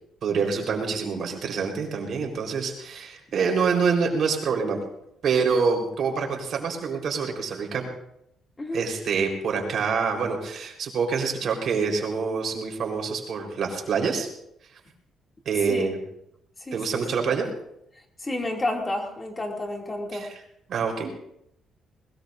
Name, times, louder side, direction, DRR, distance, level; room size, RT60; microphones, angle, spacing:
voice 1, 0.2-4.8 5.2-7.9 8.7-14.3 15.5-16.0 16.7-17.5 20.1-20.3 20.7-21.2, right 5 dB, 65° right, 2 dB, 4.2 m, -26 dB
voice 2, 8.6-8.9 15.7-15.9 16.6-17.0 18.2-20.3, left 1 dB, 25° left, 1 dB, 2.7 m, -30 dB
21.0 x 20.5 x 2.7 m, 0.78 s
cardioid pair, 90°, 0 cm